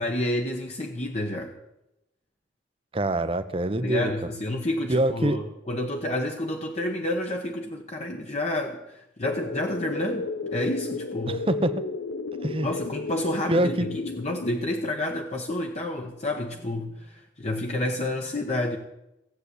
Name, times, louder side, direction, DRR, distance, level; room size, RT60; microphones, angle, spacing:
voice 1, 0.0-1.5 3.8-11.4 12.6-18.8, left 1 dB, 35° left, 2 dB, 1.1 m, -29 dB
voice 2, 2.9-4.1 4.9-5.4 11.3-11.8 12.3-12.7 13.5-13.9, right 1 dB, 30° right, 11 dB, 0.8 m, -25 dB
sound 1, 9.2-14.5, left 4 dB, 85° left, 0.7 m, -33 dB
15.5 x 8.5 x 8.3 m, 0.89 s
head